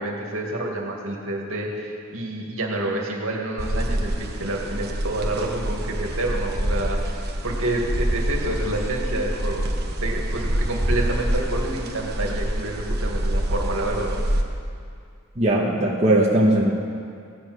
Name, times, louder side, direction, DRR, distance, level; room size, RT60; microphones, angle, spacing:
voice 1, 0.0-9.7 10.0-14.2, right 1 dB, 65° right, 0 dB, 2.2 m, -28 dB
sound 1, 3.6-14.4, right 1 dB, 45° right, 1.2 m, -26 dB
voice 2, 15.4-16.7, right 1 dB, 30° right, -4 dB, 1.2 m, -19 dB
17.0 x 10.0 x 6.4 m, 2.3 s
head